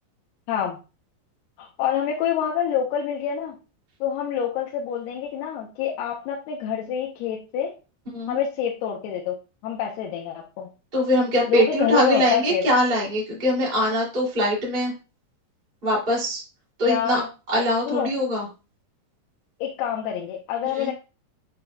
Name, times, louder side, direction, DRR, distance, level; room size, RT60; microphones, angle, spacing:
voice 1, 1.6-3.6 4.0-7.7 8.3-9.3 9.6-10.7 11.5-12.6 16.9-17.3 17.9-18.1 19.6-20.9, left 8 dB, 80° left, -1 dB, 2.8 m, -26 dB
voice 2, 10.9-14.9 15.8-16.4 16.8-17.2 17.5-18.5 20.7-20.9, equal, 15° right, -5 dB, 2.7 m, -22 dB
7.8 x 5.6 x 2.4 m, 0.31 s
omnidirectional pair, 4.8 m